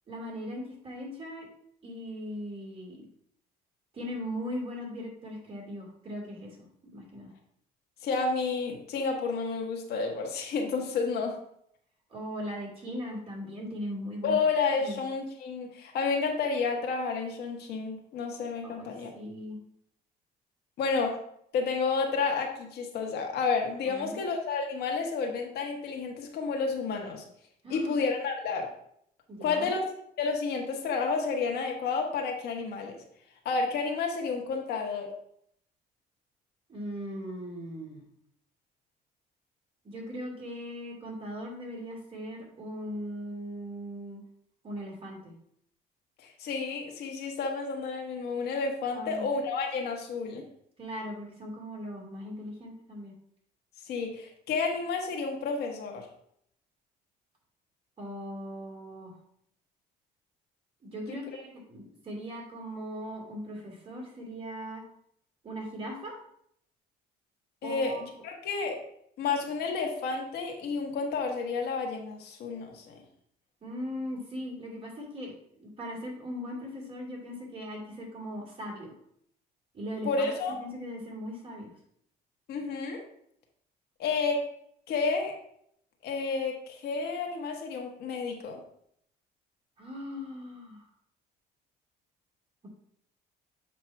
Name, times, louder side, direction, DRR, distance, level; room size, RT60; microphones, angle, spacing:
voice 1, 0.1-1.5 1.8-3.0 3.9-6.6 6.9-7.3 12.1-14.4 14.8-15.0 18.6-19.6 23.9-24.2 27.6-28.0 29.3-29.7 36.7-38.0 39.8-44.2 44.6-45.3 48.9-49.3 50.8-53.1 58.0-59.1 60.8-64.8 65.4-66.1 67.6-68.1 73.6-75.3 75.6-78.9 79.7-80.3 80.6-81.7 89.8-90.9, equal, 35° right, -2 dB, 2.7 m, -39 dB
voice 2, 8.0-11.3 14.2-19.1 20.8-21.2 21.5-27.2 27.7-28.7 29.4-29.8 30.2-33.0 33.4-35.1 46.2-50.4 53.8-56.1 61.1-61.2 67.6-68.8 69.2-73.0 80.0-80.5 82.5-83.0 84.0-84.5 84.9-85.4 86.0-88.6, left 4 dB, 75° left, 2 dB, 1.4 m, -30 dB
7.5 x 3.0 x 5.8 m, 0.69 s
cardioid pair, 110°, 17 cm